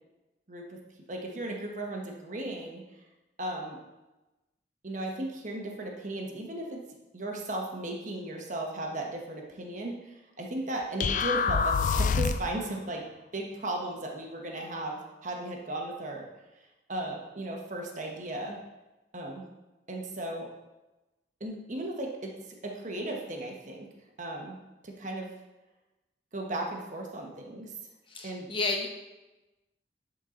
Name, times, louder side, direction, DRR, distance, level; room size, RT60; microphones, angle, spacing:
voice 1, 0.5-0.8 1.1-2.8 3.4-3.8 4.8-6.8 7.1-13.0 13.3-16.2 16.9-18.6 19.1-19.4 19.9-20.5 21.4-22.3 22.6-23.9 24.2-24.6 24.8-25.3 26.3-27.7 28.2-28.5, right 1 dB, 45° right, 1 dB, 1.2 m, -36 dB
sound 1, 11.0-12.6, left 5 dB, 45° left, 0.3 m, -26 dB
voice 2, 28.1-28.9, left 3 dB, 30° left, 1 dB, 1.0 m, -31 dB
11.0 x 4.5 x 3.8 m, 1.1 s
head